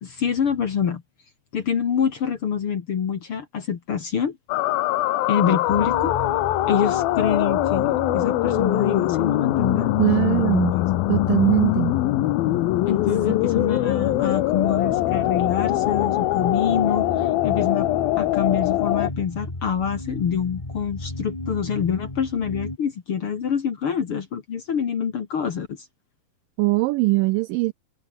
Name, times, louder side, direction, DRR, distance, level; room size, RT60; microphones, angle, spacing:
voice 1, 0.0-1.0 1.5-4.4 5.3-6.2 6.7-9.9 10.7-10.8 12.9-17.9 18.2-25.9, left 7 dB, 50° left, 1.9 m, -26 dB
sound 1, 4.5-19.1, left 18 dB, 80° left, 2.5 m, -23 dB
sound 2, 5.7-22.8, left 2 dB, 10° left, 2.3 m, -34 dB
voice 2, 10.0-10.8 11.1-12.0 26.6-27.7, right 22 dB, 85° right, 2.0 m, -21 dB
omnidirectional pair, 4.4 m